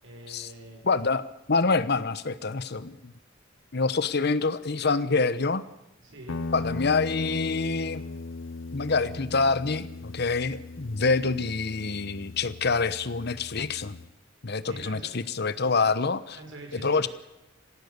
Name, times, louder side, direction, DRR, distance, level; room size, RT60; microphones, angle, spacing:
voice 1, 0.0-0.8 6.0-6.5 14.6-15.2 16.3-17.1, right 2 dB, 75° right, 3 dB, 5.9 m, -45 dB
voice 2, 0.8-3.1 3.7-5.6 6.5-8.0 8.7-14.0 14.4-16.4 16.7-17.1, left 4 dB, 60° left, 15 dB, 1.0 m, -26 dB
Guitar, 6.3-14.1, left 3 dB, 85° left, 0.7 m, -38 dB
26.5 x 16.0 x 6.9 m, 0.97 s
head